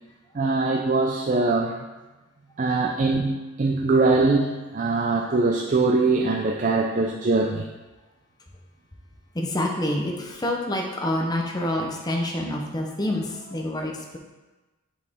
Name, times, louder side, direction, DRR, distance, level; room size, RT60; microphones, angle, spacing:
voice 1, 0.3-1.8 2.6-7.7, right 3 dB, 35° right, 1 dB, 0.4 m, -22 dB
voice 2, 9.3-14.2, left 1 dB, 20° left, 1 dB, 0.7 m, -27 dB
8.0 x 4.2 x 3.6 m, 1.2 s
head